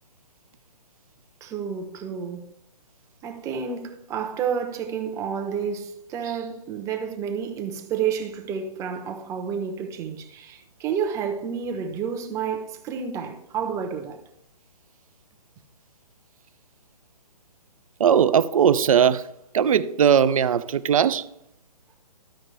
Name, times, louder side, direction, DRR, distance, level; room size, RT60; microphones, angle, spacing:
voice 1, 1.4-2.5 3.2-14.2, right 7 dB, 15° right, 0.8 m, -30 dB
voice 2, 18.0-19.2 19.5-21.3, right 8 dB, 55° right, 0.5 m, -19 dB
14.0 x 5.1 x 3.2 m
figure-of-eight pair, 140°, 21 cm